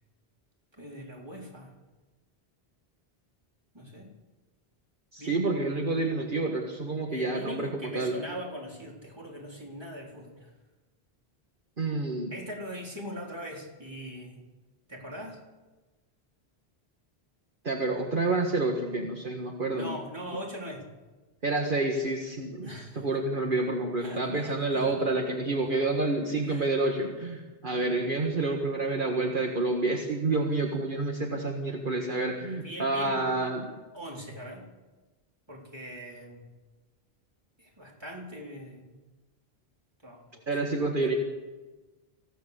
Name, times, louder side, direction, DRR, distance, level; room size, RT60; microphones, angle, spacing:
voice 1, 0.8-1.7 3.7-4.1 5.2-5.4 6.0-6.2 7.1-10.5 12.3-14.4 14.9-15.4 19.7-20.8 22.6-23.0 24.0-25.0 26.5-26.7 27.8-28.0 32.5-33.5 33.9-34.7 35.5-36.4 37.6-39.0 40.0-40.6, equal, 25° right, -2 dB, 3.9 m, -41 dB
voice 2, 5.1-8.2 11.8-12.3 17.6-19.9 21.4-33.7 40.5-41.2, right 2 dB, 55° right, 1 dB, 1.9 m, -28 dB
25.5 x 16.0 x 6.8 m, 1.2 s
omnidirectional pair, 1.0 m